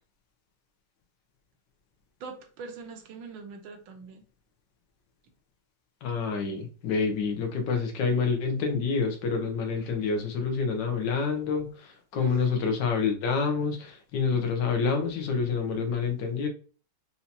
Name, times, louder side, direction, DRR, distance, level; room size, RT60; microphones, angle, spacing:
voice 1, 2.2-4.2 5.2-5.3 12.2-12.4, right 5 dB, 80° right, 1.6 m, -42 dB
voice 2, 6.0-16.5, left 5 dB, 65° left, 1.4 m, -28 dB
5.6 x 2.8 x 2.8 m
omnidirectional pair, 2.2 m